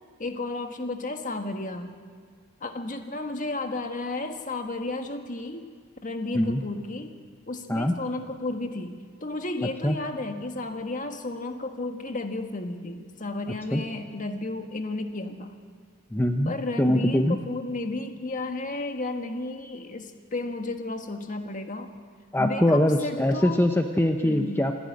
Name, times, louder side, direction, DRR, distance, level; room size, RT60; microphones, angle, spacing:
voice 1, 0.2-1.9 2.6-5.7 6.0-7.1 7.5-15.6 16.4-21.9 22.4-23.7 24.2-24.6, left 2 dB, 40° left, 5 dB, 1.5 m, -33 dB
voice 2, 16.1-16.5 16.8-17.4 22.3-24.7, left 1 dB, 10° left, 5 dB, 0.8 m, -22 dB
27.0 x 10.5 x 9.7 m, 2.1 s
head